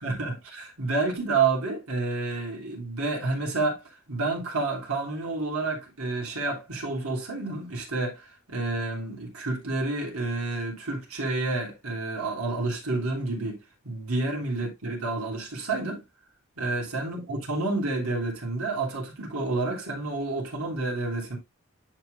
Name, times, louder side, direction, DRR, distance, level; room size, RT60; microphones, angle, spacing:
voice 1, 0.0-3.8 4.1-16.0 16.6-21.4, right 3 dB, 80° right, 3.2 m, -29 dB
10.5 x 4.8 x 2.6 m
head